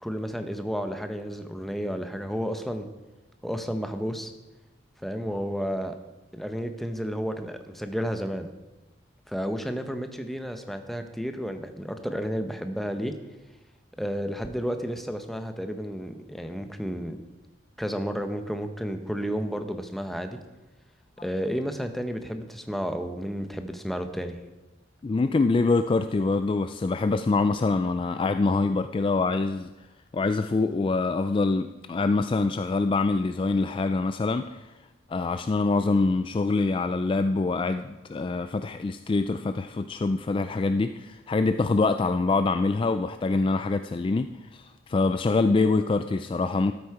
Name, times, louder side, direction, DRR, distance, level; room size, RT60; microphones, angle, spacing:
voice 1, 0.0-2.9 3.4-4.3 5.0-6.0 6.3-8.5 9.3-13.1 14.0-17.2 17.8-20.4 21.2-24.4, equal, ahead, 7 dB, 0.8 m, -31 dB
voice 2, 25.0-29.7 30.1-34.7 35.1-46.7, left 3 dB, 30° left, 9 dB, 0.3 m, -25 dB
13.0 x 8.3 x 4.7 m, 1.1 s
head